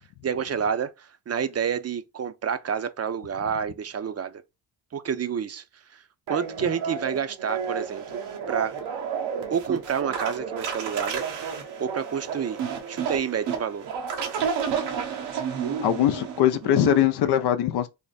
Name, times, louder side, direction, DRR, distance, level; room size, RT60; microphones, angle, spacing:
voice 1, 0.2-4.4 4.9-5.6 5.9-8.2 8.5-8.8 9.5-11.2 11.8-12.6 12.9-13.9, right 7 dB, 40° right, 0.5 m, -29 dB
sound 1, 6.3-17.1, right 7 dB, 90° right, 1.0 m, -31 dB
voice 2, 15.8-17.9, left 11 dB, 70° left, 0.5 m, -21 dB
3.5 x 2.1 x 4.0 m
cardioid pair, 75°, 41 cm